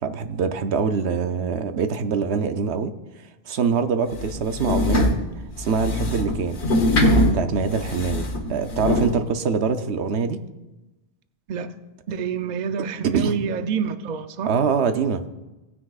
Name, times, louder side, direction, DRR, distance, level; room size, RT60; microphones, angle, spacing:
voice 1, 0.0-2.9 3.5-5.1 5.6-6.6 7.2-10.4 13.1-13.4 14.5-15.2, right 5 dB, 90° right, 1.0 m, -24 dB
sound 1, 4.1-9.1, left 1 dB, 90° left, 1.5 m, -22 dB
voice 2, 12.1-14.5, right 6 dB, 50° right, 0.7 m, -27 dB
17.0 x 9.7 x 2.4 m
omnidirectional pair, 1.1 m